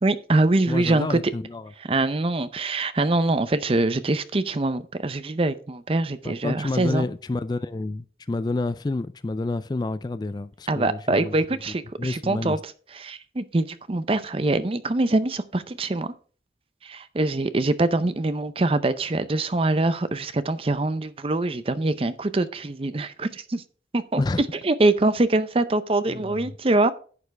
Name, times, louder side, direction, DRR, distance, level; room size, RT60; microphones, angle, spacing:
voice 1, 0.0-1.2 1.9-7.1 10.7-12.6 12.9-16.1 16.8-23.6 23.9-26.9, right 2 dB, 35° right, 0.6 m, -24 dB
voice 2, 0.7-1.7 6.2-11.3 11.7-12.6 24.2-24.4 26.1-26.5, left 2 dB, 25° left, 0.3 m, -29 dB
11.0 x 7.1 x 3.3 m
head